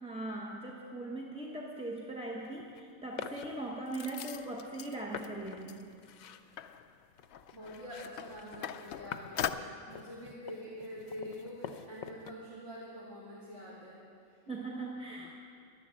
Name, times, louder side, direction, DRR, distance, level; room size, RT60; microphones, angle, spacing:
voice 1, 0.0-5.9 14.5-15.4, right 2 dB, 5° right, -2 dB, 0.6 m, -40 dB
sound 1, 2.4-2.8 3.2-4.0 4.6-4.7 5.1-12.3, left 8 dB, 85° left, 1.1 m, -47 dB
sound 2, 3.9-5.3 5.6-5.8 6.1-6.2 6.6-9.5, left 10 dB, 65° left, 0.7 m, -41 dB
voice 2, 7.5-14.6, equal, 55° right, -8 dB, 2.9 m, -46 dB
11.5 x 11.5 x 7.4 m, 2.4 s
omnidirectional pair, 1.4 m